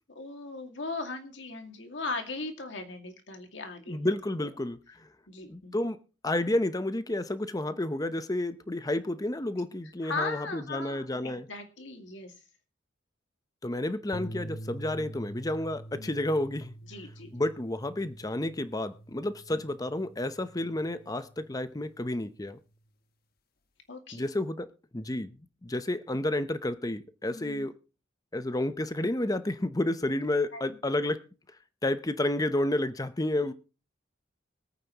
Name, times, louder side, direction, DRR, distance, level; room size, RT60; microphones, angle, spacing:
voice 1, 0.1-4.0 4.4-4.5 5.3-5.8 7.7-7.8 10.0-12.3 15.0-15.2 15.9-16.2 16.9-17.3 19.5-19.6 23.9-24.2 27.3-27.7 30.5-30.6 33.4-33.5, left 3 dB, 70° left, 2.2 m, -38 dB
voice 2, 3.9-4.8 5.5-6.0 6.2-11.5 13.6-16.7 17.3-22.6 24.1-24.7 24.9-25.4 25.6-27.7 28.3-31.2 31.8-33.5, left 1 dB, 20° left, 0.8 m, -30 dB
sound 1, 14.1-22.5, right 1 dB, 55° left, 1.1 m, -46 dB
24.0 x 8.9 x 3.0 m
head